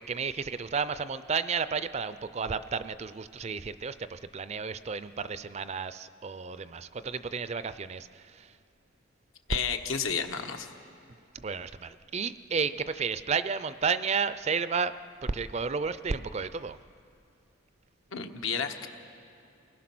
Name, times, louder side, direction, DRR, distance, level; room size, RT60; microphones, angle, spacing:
voice 1, 0.0-8.5 11.3-14.9 15.2-16.8, right 5 dB, 30° right, 13 dB, 0.4 m, -32 dB
voice 2, 9.5-10.7 18.1-18.9, left 6 dB, 80° left, 5 dB, 1.4 m, -31 dB
28.5 x 19.5 x 6.1 m, 2.6 s
head